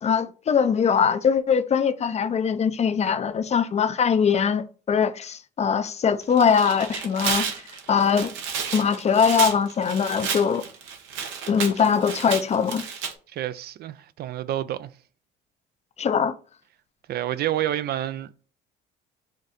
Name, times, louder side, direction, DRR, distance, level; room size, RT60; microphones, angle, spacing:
voice 1, 0.0-7.5 7.9-8.3 8.7-10.6 11.5-12.8 16.0-16.3, left 6 dB, 35° left, 0.5 m, -22 dB
Tearing, 6.2-13.1, right 6 dB, 80° right, 1.0 m, -31 dB
voice 2, 13.3-14.9 17.1-18.5, right 12 dB, 55° right, 0.4 m, -29 dB
5.0 x 2.6 x 4.1 m
supercardioid pair, 85°, 19 cm